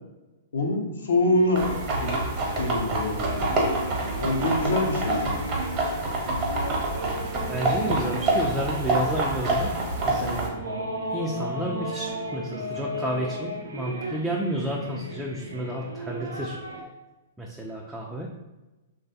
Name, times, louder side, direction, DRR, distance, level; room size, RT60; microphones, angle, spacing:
voice 1, 0.5-2.2 2.6-3.5 4.2-5.5, left 1 dB, 75° left, 2 dB, 0.6 m, -25 dB
sound 1, 1.2-16.8, right 1 dB, 85° right, 0.4 m, -35 dB
sound 2, 1.6-10.5, right 2 dB, 35° right, 0.8 m, -27 dB
voice 2, 7.5-9.7 10.0-10.5 11.1-16.6 17.4-18.3, right 1 dB, 5° right, -3 dB, 0.4 m, -31 dB
3.1 x 2.3 x 2.7 m, 1.1 s
hypercardioid pair, 115°, 0 cm